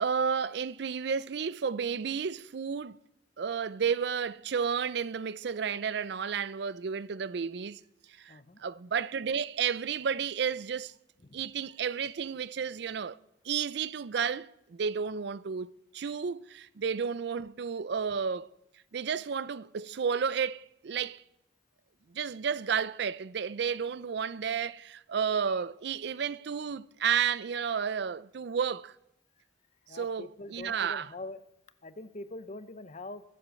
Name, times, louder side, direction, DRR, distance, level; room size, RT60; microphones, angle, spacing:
voice 1, 0.0-3.0 3.4-7.8 8.2-10.9 11.3-13.2 13.4-18.5 18.9-21.2 22.1-29.0 29.9-31.1, right 6 dB, 65° right, 0.5 m, -32 dB
voice 2, 8.3-8.6 11.2-11.4 25.5-25.6 29.9-31.4 31.8-33.2, left 2 dB, 40° left, 0.8 m, -43 dB
23.0 x 7.8 x 6.4 m
head